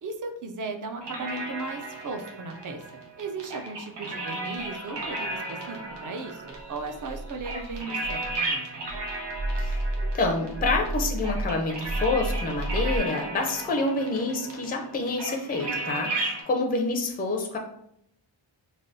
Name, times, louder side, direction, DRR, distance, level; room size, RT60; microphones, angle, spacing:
voice 1, 0.0-2.8 3.2-8.8, right 3 dB, 45° right, 4 dB, 0.4 m, -36 dB
sound 1, 1.0-16.4, right 2 dB, 60° right, 0.8 m, -35 dB
sound 2, 4.6-8.5 8.8-13.0, right 1 dB, 85° right, 1.1 m, -33 dB
voice 2, 9.6-17.6, left 3 dB, 20° left, 2 dB, 0.4 m, -28 dB
3.3 x 2.2 x 2.6 m, 0.73 s
wide cardioid pair, 120°, 47 cm